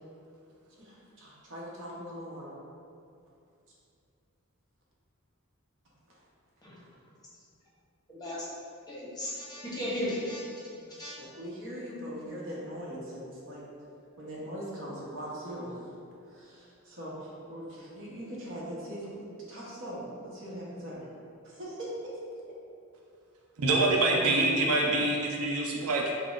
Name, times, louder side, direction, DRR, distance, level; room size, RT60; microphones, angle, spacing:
voice 1, 0.7-2.5 10.7-13.6 14.2-15.9 16.2-21.1 21.4-22.2 24.1-25.0, equal, 60° right, -5 dB, 0.8 m, -41 dB
voice 2, 8.1-8.4 8.9-10.4 11.0-11.1, left 1 dB, 20° left, -8 dB, 0.7 m, -35 dB
voice 3, 23.6-26.1, right 2 dB, 85° right, 0 dB, 0.4 m, -25 dB
5.7 x 2.0 x 2.4 m, 2.5 s
head